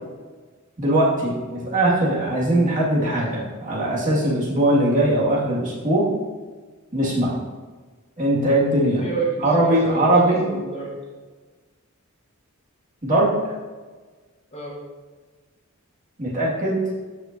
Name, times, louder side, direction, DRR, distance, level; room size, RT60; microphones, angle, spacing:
voice 1, 0.8-6.1 6.9-7.4 8.2-9.0 9.4-10.5 13.0-13.3 16.2-16.8, right 1 dB, 35° right, -6 dB, 2.0 m, -20 dB
voice 2, 9.0-10.9 14.5-14.8, right 3 dB, 30° left, -3 dB, 1.3 m, -29 dB
12.0 x 5.2 x 2.7 m, 1.4 s
head